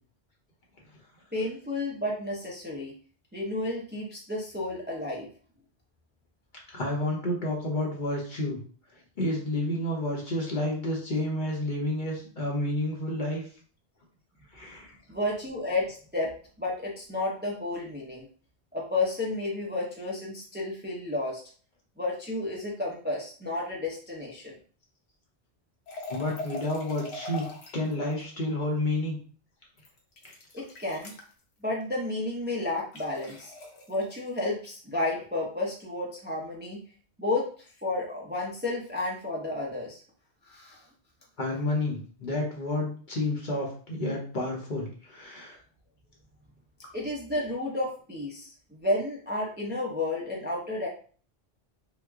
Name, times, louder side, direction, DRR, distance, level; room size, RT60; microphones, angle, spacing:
voice 1, 1.3-2.9 3.3-5.3 15.1-16.3 16.6-18.3 18.7-21.4 22.0-24.5 30.5-31.1 31.6-33.5 33.9-36.8 37.2-40.0 40.5-40.8 46.9-50.9, left 2 dB, 15° right, -4 dB, 0.5 m, -31 dB
voice 2, 6.7-8.6 9.2-13.4 14.5-15.0 26.1-29.2 41.4-45.6, left 1 dB, 50° left, -2 dB, 0.9 m, -30 dB
sound 1, 25.9-27.9 29.8-31.3 32.9-34.0, left 1 dB, 85° left, 1.0 m, -41 dB
3.0 x 2.0 x 3.5 m, 0.43 s
omnidirectional pair, 1.1 m